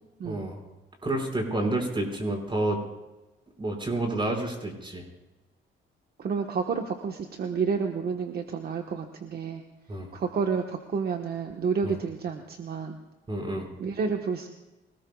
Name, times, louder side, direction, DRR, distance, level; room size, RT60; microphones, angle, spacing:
voice 1, 0.2-0.6 1.0-2.8 3.6-5.0 9.9-10.1 11.8-12.0 13.3-13.7, right 2 dB, 25° right, 2 dB, 5.4 m, -29 dB
voice 2, 6.2-9.6 10.1-13.0 13.8-14.5, right 5 dB, 50° right, 3 dB, 1.3 m, -30 dB
25.0 x 19.5 x 2.4 m, 1.1 s
cardioid pair, 90°, 20 cm